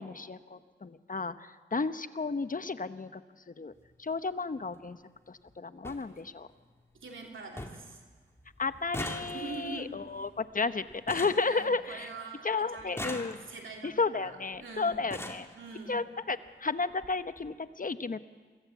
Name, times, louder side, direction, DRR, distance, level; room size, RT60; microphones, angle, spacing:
voice 1, 0.0-3.2 3.5-3.7 4.0-5.0 5.3-6.5 8.6-12.1 12.4-13.4 13.8-15.5 15.9-18.2, left 4 dB, 45° left, 12 dB, 0.9 m, -33 dB
sound 1, 3.7-3.9 5.1-5.2 5.5-5.6 5.8-6.0 6.5-7.0 7.2-7.3 7.6-7.9 8.2-12.2 12.8-13.8 14.6-14.7 14.9-15.5 16.5-16.6 16.9-17.1 17.4-17.5, left 1 dB, 15° left, 2.4 m, -42 dB
voice 2, 6.9-8.0 9.3-9.9 11.5-15.1 15.5-16.0, right 3 dB, 85° right, 1 dB, 3.1 m, -44 dB
23.0 x 16.0 x 8.1 m, 1.5 s
cardioid pair, 55°, 20 cm